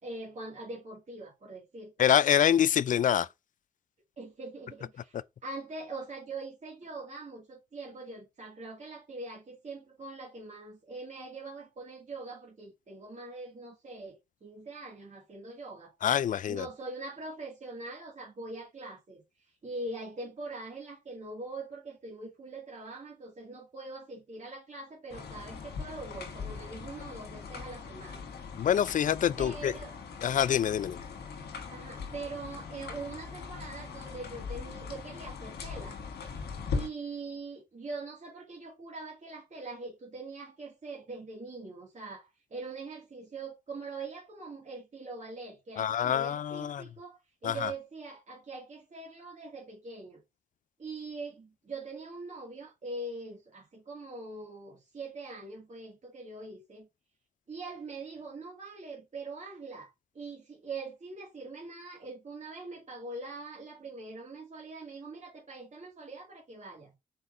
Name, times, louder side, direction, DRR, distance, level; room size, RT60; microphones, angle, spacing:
voice 1, 0.0-2.1 4.2-5.1 5.4-15.9 16.5-19.2 19.6-28.2 29.4-30.0 31.7-36.0 36.7-50.2 50.8-56.9 57.5-66.9, right 3 dB, 40° right, 2.2 m, -43 dB
voice 2, 2.0-3.3 16.0-16.7 28.6-29.7 30.2-31.0 45.8-46.8 47.4-47.7, left 9 dB, 50° left, 0.4 m, -26 dB
sound 1, 25.1-36.9, left 5 dB, 70° left, 1.4 m, -40 dB
4.4 x 4.0 x 2.5 m
supercardioid pair, 45°, 18 cm